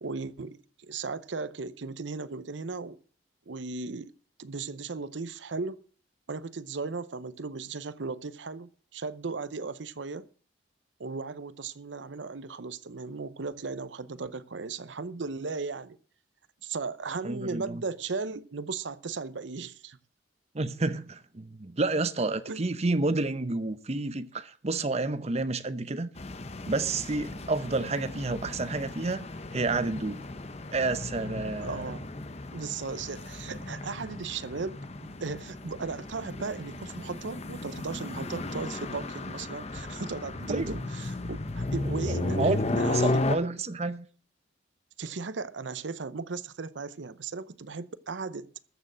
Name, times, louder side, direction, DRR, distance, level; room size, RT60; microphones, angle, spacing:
voice 1, 0.0-3.0 3.5-4.1 4.4-5.8 6.3-10.3 11.0-16.0 16.6-20.0 22.5-22.7 31.6-32.1 32.5-43.2 45.0-48.5, right 4 dB, 80° right, 0.7 m, -36 dB
voice 2, 17.2-17.8 20.5-26.1 26.7-29.3 29.5-30.2 30.7-31.8 40.5-40.8 42.2-44.1, right 3 dB, 35° right, 0.8 m, -30 dB
sound 1, 26.2-43.4, left 2 dB, 35° left, 0.9 m, -34 dB
14.0 x 6.7 x 7.4 m
head